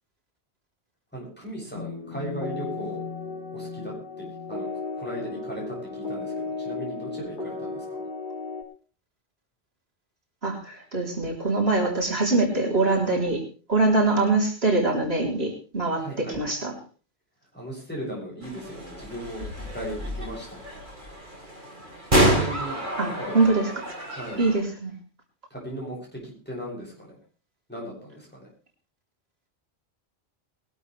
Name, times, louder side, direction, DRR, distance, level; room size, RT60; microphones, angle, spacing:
voice 1, 1.1-3.0 3.5-4.7 5.0-8.1 15.9-16.4 17.5-19.5 19.7-20.6 22.3-23.6 24.0-24.4 25.5-27.2 27.7-28.5, equal, 10° left, -4 dB, 7.8 m, -37 dB
sound 1, 1.7-8.6, left 4 dB, 50° left, 3.9 m, -34 dB
voice 2, 10.4-13.4 13.7-16.7 23.0-24.1 24.4-24.9, right 2 dB, 70° right, -2 dB, 4.0 m, -24 dB
sound 2, 18.4-24.6, right 1 dB, 50° right, 4.5 m, -28 dB
21.5 x 12.5 x 3.4 m, 0.38 s
omnidirectional pair, 1.1 m